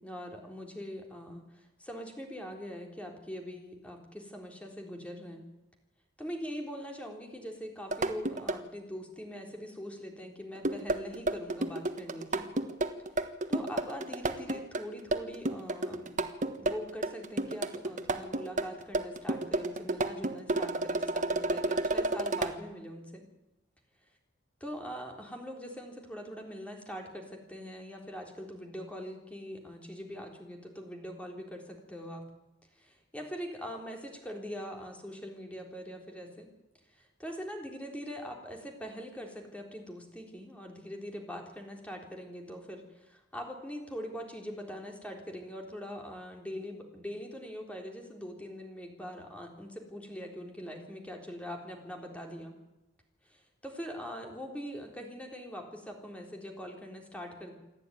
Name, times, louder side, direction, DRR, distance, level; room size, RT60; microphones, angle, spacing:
voice 1, 0.0-5.4 6.2-12.5 13.5-16.2 16.6-23.2 24.6-32.2 32.8-36.5 36.9-52.5 53.2-57.5, equal, 5° left, 2 dB, 3.8 m, -42 dB
sound 1, 7.9-8.6 10.6-22.5, right 2 dB, 40° right, 1.4 m, -31 dB
28.0 x 12.0 x 9.4 m, 0.99 s
head